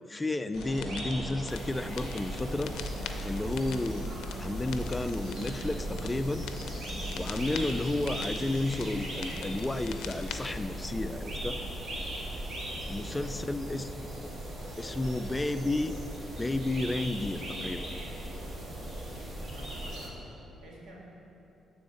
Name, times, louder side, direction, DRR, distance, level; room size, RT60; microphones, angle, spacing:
voice 1, 0.1-2.7 3.2-4.1 4.4-6.4 7.1-11.6 12.9-14.3 14.8-15.9 16.4-17.9, left 2 dB, 15° left, 10 dB, 0.3 m, -32 dB
sound 1, 0.5-10.5, left 7 dB, 85° left, 0.5 m, -45 dB
sound 2, 0.5-20.1, right 1 dB, 50° right, 2.0 m, -38 dB
sound 3, 1.5-20.1, right 1 dB, 30° right, 1.1 m, -53 dB
voice 2, 12.6-13.1 19.4-21.0, right 1 dB, 75° right, -3 dB, 1.8 m, -52 dB
9.3 x 3.9 x 6.9 m, 3.0 s
cardioid pair, 90°, 0 cm